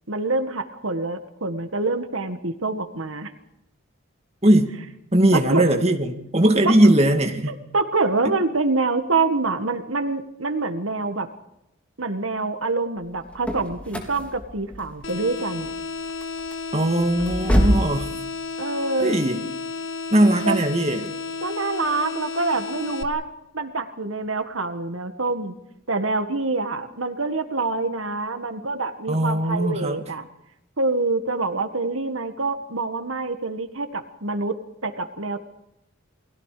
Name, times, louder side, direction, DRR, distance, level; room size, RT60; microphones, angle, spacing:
voice 1, 0.1-3.3 5.3-5.6 6.6-6.7 7.5-11.3 12.0-15.7 18.6-19.2 20.5-20.6 21.4-23.3 23.5-25.6 25.9-30.2 30.8-34.6 34.8-35.4, right 3 dB, 80° right, 8 dB, 1.8 m, -26 dB
voice 2, 5.1-7.6 16.7-18.1 19.0-19.4 20.1-21.2 29.1-30.0, right 1 dB, 30° right, 5 dB, 2.2 m, -19 dB
sound 1, 13.0-18.0, equal, 5° left, 3.9 m, -26 dB
sound 2, 15.0-23.0, left 4 dB, 60° left, 2.1 m, -32 dB
30.0 x 21.5 x 5.1 m, 0.84 s
head